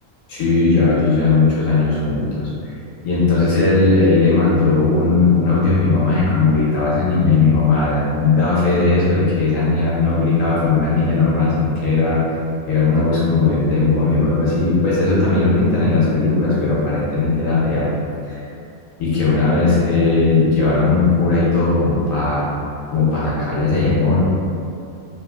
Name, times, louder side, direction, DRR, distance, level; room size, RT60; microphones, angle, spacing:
voice 1, 0.3-2.7 3.0-12.2 12.7-17.9 18.3-18.4 19.0-22.5 22.9-24.2, left 3 dB, 70° left, -8 dB, 1.2 m, -17 dB
3.2 x 2.5 x 2.4 m, 2.5 s
omnidirectional pair, 1.5 m